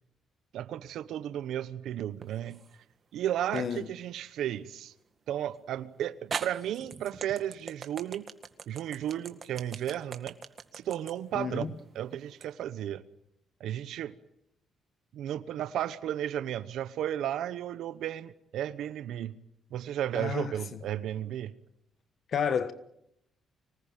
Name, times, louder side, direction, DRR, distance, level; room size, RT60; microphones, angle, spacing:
voice 1, 0.5-2.6 3.1-4.9 5.3-8.3 8.7-10.3 10.7-13.0 13.6-14.1 15.1-19.4 19.7-21.5, right 11 dB, 80° right, 1.0 m, -34 dB
sound 1, 2.2-2.8 3.6-3.7 5.5-5.6 6.3-12.5, right 6 dB, 45° right, 2.0 m, -41 dB
voice 2, 3.5-3.8 11.3-11.7 20.2-20.5 22.3-22.7, left 7 dB, 55° left, 1.3 m, -30 dB
25.5 x 19.0 x 9.2 m
cardioid pair, 90°, 0 cm